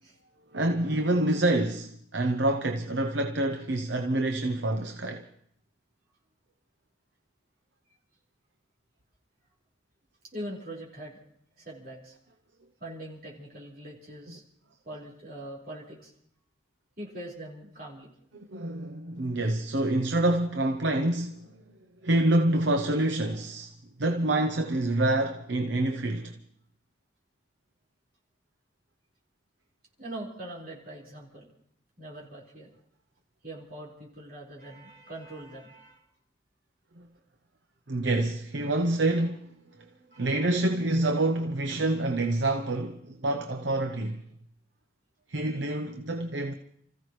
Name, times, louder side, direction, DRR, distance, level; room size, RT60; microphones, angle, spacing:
voice 1, 0.5-5.2 18.3-23.7 24.0-26.3 37.0-37.1 37.9-39.5 40.2-44.2 45.3-46.5, right 1 dB, 70° right, 0.8 m, -27 dB
voice 2, 10.3-11.2 11.6-12.1 12.8-14.4 14.8-16.1 17.0-18.1 30.0-31.5 32.0-32.7 33.4-36.0 40.1-40.6, right 1 dB, 50° right, 4.6 m, -42 dB
30.0 x 15.0 x 3.2 m
head